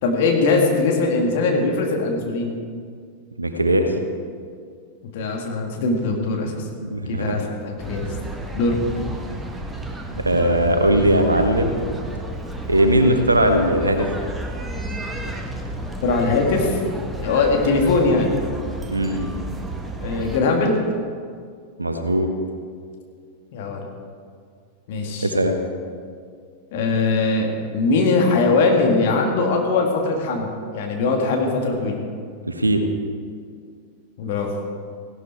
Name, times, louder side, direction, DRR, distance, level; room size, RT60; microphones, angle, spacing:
voice 1, 0.0-2.5 5.1-6.6 7.1-8.1 8.5-8.8 16.0-16.8 17.2-18.4 20.0-20.8 23.5-23.8 24.9-25.3 26.7-32.0 34.2-34.6, left 3 dB, 50° left, 1 dB, 2.2 m, -21 dB
voice 2, 3.4-3.9 6.8-7.4 10.1-11.7 12.7-14.1 18.9-19.3 21.8-22.3 25.2-25.6 32.5-32.8, right 1 dB, 80° right, 7 dB, 1.2 m, -19 dB
sound 1, 7.8-20.4, right 1 dB, 10° right, 1.4 m, -31 dB
16.0 x 12.0 x 4.5 m, 2.2 s
figure-of-eight pair, 90°, 0 cm